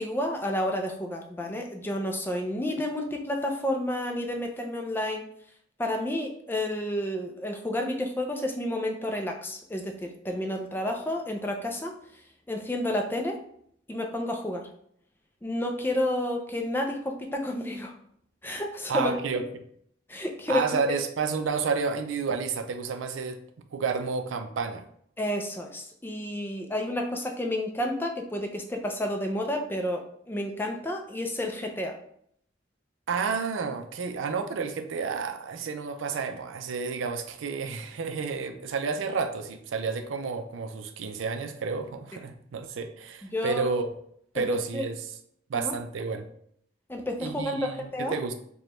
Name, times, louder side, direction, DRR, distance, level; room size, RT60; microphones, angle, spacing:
voice 1, 0.0-5.3 5.8-11.9 12.5-13.4 13.9-14.7 15.4-17.9 18.4-19.1 20.1-20.8 25.2-31.9 43.3-43.7 44.4-44.5 44.7-44.8 45.5-45.7 46.9-48.2, left 1 dB, 10° left, 2 dB, 0.4 m, -30 dB
voice 2, 18.9-19.4 20.5-23.4 23.7-24.8 33.1-43.9 44.3-45.0 45.5-46.3 47.2-48.3, right 5 dB, 90° right, 8 dB, 0.4 m, -30 dB
5.0 x 2.2 x 3.0 m, 0.67 s
head